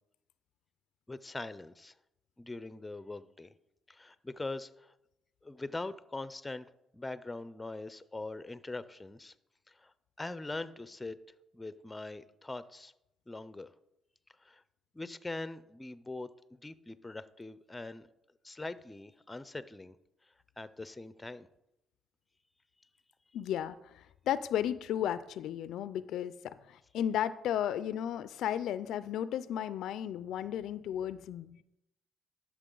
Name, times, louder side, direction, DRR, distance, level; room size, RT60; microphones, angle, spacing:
voice 1, 1.1-1.9 2.4-3.5 3.9-4.9 5.4-6.7 6.9-9.3 9.7-9.9 10.2-11.2 11.5-12.9 13.3-13.7 14.4-14.6 14.9-18.1 18.4-20.0 20.6-21.5, left 2 dB, 15° left, 15 dB, 0.5 m, -42 dB
voice 2, 23.3-31.6, left 10 dB, 80° left, 15 dB, 0.3 m, -34 dB
11.5 x 6.2 x 3.8 m, 0.86 s
cardioid pair, 90°, 0 cm